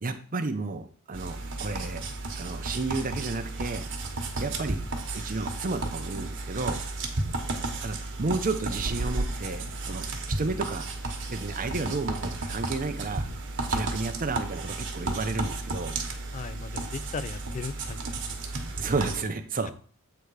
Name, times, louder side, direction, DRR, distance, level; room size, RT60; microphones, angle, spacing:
voice 1, 0.0-2.0 2.4-3.9 4.4-4.8 5.1-6.8 7.8-10.9 11.3-13.3 13.7-16.0 18.8-19.7, right 3 dB, 40° right, 8 dB, 0.7 m, -32 dB
sound 1, 1.1-19.2, right 2 dB, 60° right, 1.1 m, -33 dB
voice 2, 16.3-18.1 19.7-19.8, left 5 dB, 35° left, 16 dB, 0.3 m, -37 dB
8.0 x 3.4 x 4.8 m, 0.43 s
head